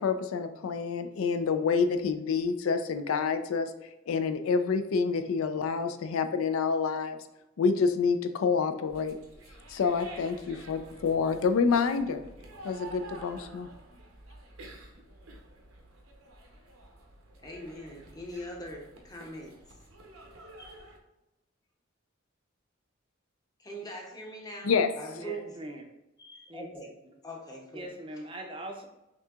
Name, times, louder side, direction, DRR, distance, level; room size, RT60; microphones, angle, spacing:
voice 1, 0.0-7.2 7.6-9.2 9.4-12.2 12.6-13.7 24.6-24.9, left 5 dB, 80° left, 8 dB, 0.4 m, -28 dB
sound 1, 8.9-21.0, right 2 dB, 80° right, 0.7 m, -50 dB
voice 2, 17.4-19.5 20.6-20.8 23.6-24.7 25.0-25.5 26.2-26.9 27.2-27.9, right 1 dB, 20° left, 0 dB, 0.7 m, -42 dB
voice 3, 25.2-25.8 26.5-26.7 27.7-28.9, right 1 dB, 25° right, 3 dB, 0.5 m, -41 dB
6.2 x 2.7 x 2.3 m, 0.95 s
head